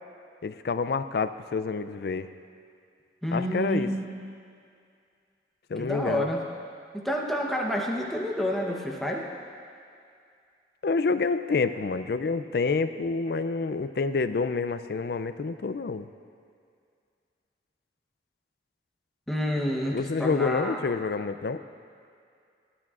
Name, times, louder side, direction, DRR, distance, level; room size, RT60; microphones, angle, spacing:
voice 1, 0.4-2.3 3.3-3.9 5.7-6.3 10.8-16.1 19.9-21.6, left 4 dB, 60° left, 11 dB, 0.4 m, -28 dB
voice 2, 3.2-4.1 5.8-6.4 6.9-9.2 19.3-20.8, equal, ahead, -2 dB, 0.9 m, -29 dB
18.0 x 10.5 x 2.5 m, 2.3 s
head